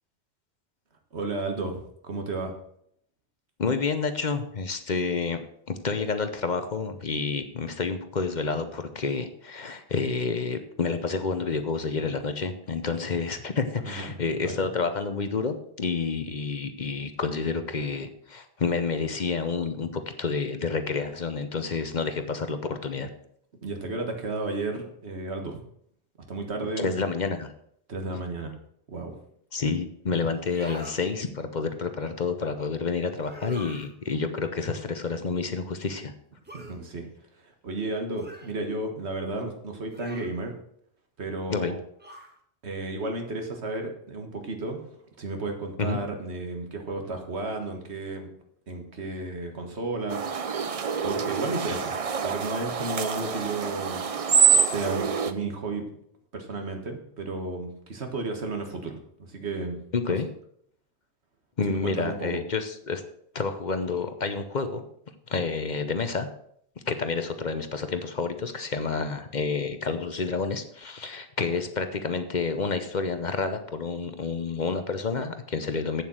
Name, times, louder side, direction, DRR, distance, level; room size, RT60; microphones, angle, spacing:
voice 1, 1.1-1.8 2.0-2.5 13.9-14.1 14.4-14.6 23.6-25.6 26.3-26.8 27.9-28.5 28.9-29.1 36.5-37.1 37.4-40.6 41.2-41.8 42.6-44.8 45.2-48.3 48.7-50.2 50.6-50.7 51.0-51.9 52.2-54.0 54.6-55.8 56.3-59.8 61.8-62.4, right 2 dB, 80° right, 4 dB, 1.9 m, -33 dB
voice 2, 3.6-5.4 5.7-23.1 26.8-27.5 29.5-36.1 41.5-41.8 45.8-46.0 59.9-60.3 61.6-63.0 63.3-64.8 65.3-66.3 66.9-76.0, left 4 dB, 45° left, 9 dB, 0.9 m, -29 dB
sound 1, 30.4-31.0 33.2-33.9 36.5-36.8 38.2-38.5 39.9-40.4 42.0-42.4, equal, 10° right, 1.3 m, -43 dB
sound 2, 50.1-55.3, right 6 dB, 40° right, 0.6 m, -25 dB
8.5 x 7.3 x 6.3 m, 0.69 s
omnidirectional pair, 1.1 m